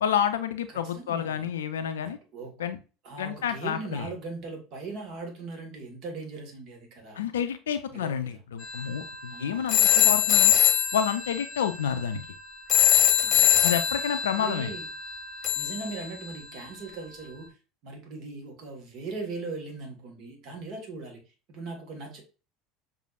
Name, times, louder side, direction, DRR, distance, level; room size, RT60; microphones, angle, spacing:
voice 1, 0.0-2.2 2.6-2.8 3.2-4.1 7.1-10.6 10.9-12.2 13.6-14.7, left 8 dB, 70° left, 0.4 m, -29 dB
voice 2, 0.7-1.5 2.0-2.6 3.0-7.2 7.9-8.4 9.3-9.9 10.3-10.6 13.2-13.6 14.4-14.9 15.5-17.5 17.8-22.2, right 3 dB, 50° right, 1.4 m, -40 dB
sound 1, 8.6-16.7, left 11 dB, 40° left, 0.9 m, -24 dB
6.4 x 2.7 x 2.4 m
figure-of-eight pair, 70°, 0 cm